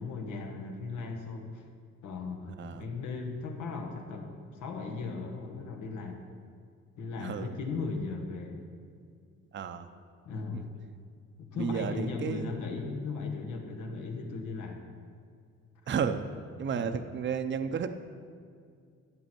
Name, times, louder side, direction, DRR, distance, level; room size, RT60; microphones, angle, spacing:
voice 1, 0.0-1.6 2.0-4.3 4.6-6.2 7.0-8.6 10.2-10.8 11.5-14.8 16.8-16.9, left 4 dB, 85° left, 2 dB, 1.5 m, -37 dB
voice 2, 7.2-7.5 9.5-9.9 10.5-10.6 11.6-12.6 15.9-16.3 16.6-18.0, right 6 dB, 40° right, 8 dB, 0.6 m, -32 dB
13.0 x 8.3 x 4.5 m, 2.2 s
cardioid pair, 90°, 30 cm